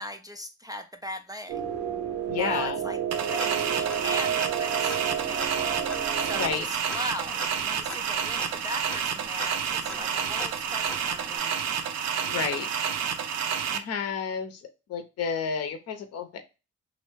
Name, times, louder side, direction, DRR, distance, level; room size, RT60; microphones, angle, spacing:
voice 1, 0.0-1.6 2.3-5.8 6.2-11.5 12.3-12.7, left 1 dB, 15° right, 5 dB, 0.3 m, -39 dB
sound 1, 1.5-6.5, right 8 dB, 80° right, 0.8 m, -30 dB
voice 2, 2.3-2.8 6.3-6.7 12.3-12.7 13.7-14.6 14.9-16.4, left 7 dB, 55° left, 7 dB, 0.6 m, -30 dB
sound 2, 3.1-13.8, right 7 dB, 60° right, 0.5 m, -30 dB
Tick-tock, 3.4-4.1 4.4-4.5 4.9-11.4, left 1 dB, 5° left, 0.8 m, -42 dB
3.1 x 2.6 x 3.2 m, 0.29 s
cardioid pair, 90°, 30 cm